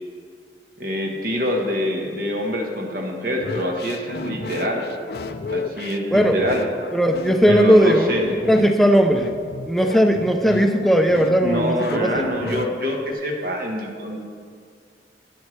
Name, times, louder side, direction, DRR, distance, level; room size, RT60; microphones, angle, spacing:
voice 1, 0.8-4.8 5.5-6.6 7.5-8.3 11.4-14.2, equal, 55° right, 1 dB, 1.3 m, -25 dB
sound 1, 3.4-13.1, left 3 dB, 60° left, 0.5 m, -32 dB
voice 2, 6.9-9.3 9.7-12.3, equal, ahead, 4 dB, 0.5 m, -17 dB
11.5 x 9.3 x 3.2 m, 2.2 s
head